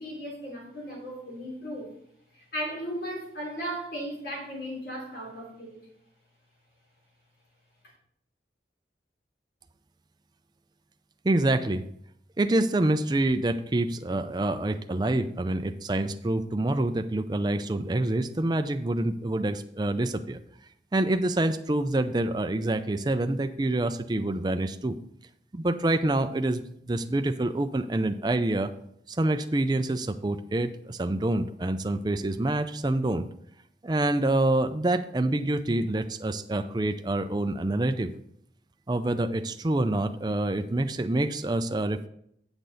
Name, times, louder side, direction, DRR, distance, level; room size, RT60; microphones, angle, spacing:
voice 1, 0.0-1.9 2.3-5.8, equal, 60° left, -2 dB, 3.2 m, -36 dB
voice 2, 11.2-11.8 12.4-20.4 20.9-25.0 25.5-28.7 29.1-33.3 33.8-38.1 38.9-42.1, right 2 dB, 25° right, 8 dB, 0.4 m, -26 dB
8.9 x 6.6 x 4.0 m, 0.71 s
head